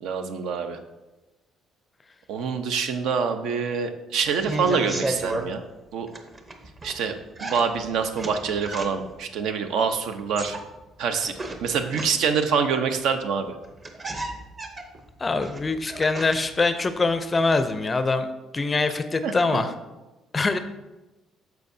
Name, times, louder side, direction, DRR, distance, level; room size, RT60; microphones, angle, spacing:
voice 1, 0.0-0.8 2.3-5.6 5.9-6.1 6.8-7.1 7.4-10.6 11.0-11.3 11.6-13.5 19.2-19.3, right 6 dB, 75° right, 7 dB, 0.8 m, -25 dB
sound 1, 4.2-5.5 6.1-7.0 7.4-9.2 10.1-12.4 13.3-13.4 13.6-16.6 16.9-17.6, right 2 dB, 25° right, 0.7 m, -34 dB
voice 2, 15.2-18.3 18.5-19.7 20.3-20.6, left 3 dB, 20° left, 10 dB, 0.5 m, -23 dB
14.0 x 4.7 x 2.7 m, 1.1 s
cardioid pair, 160°, 0 cm